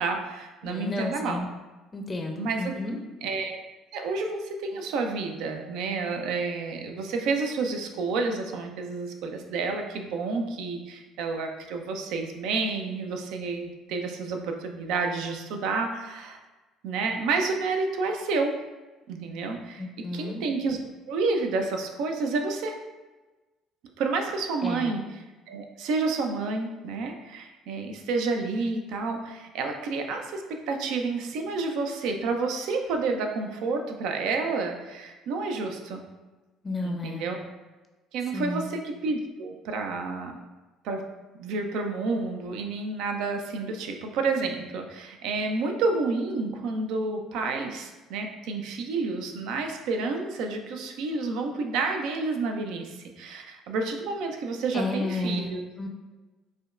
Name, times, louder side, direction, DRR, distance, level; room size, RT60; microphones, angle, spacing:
voice 1, 0.0-1.4 2.4-2.6 3.2-3.6 3.9-16.4 16.8-18.6 19.1-19.9 20.1-20.8 21.1-22.7 24.0-25.0 25.5-36.1 36.8-37.4 38.1-40.4 40.8-41.0 41.4-55.6, right 3 dB, 70° right, 4 dB, 0.5 m, -30 dB
voice 2, 0.6-1.5 1.9-3.0 19.8-20.4 24.6-25.0 36.6-37.3 38.3-38.7 54.7-55.9, left 2 dB, 25° left, 3 dB, 0.5 m, -32 dB
5.0 x 2.2 x 2.5 m, 1.2 s
hypercardioid pair, 65°, 0 cm